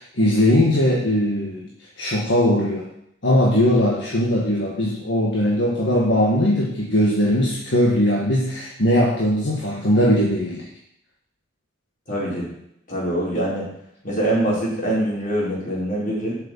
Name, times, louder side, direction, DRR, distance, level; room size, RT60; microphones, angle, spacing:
voice 1, 0.0-1.7 2.0-2.9 3.2-10.7, left 1 dB, 60° left, -3 dB, 1.6 m, -19 dB
voice 2, 12.1-12.5 12.9-13.7 14.0-16.3, right 1 dB, 40° left, -6 dB, 4.7 m, -24 dB
7.7 x 6.7 x 7.3 m, 0.76 s
head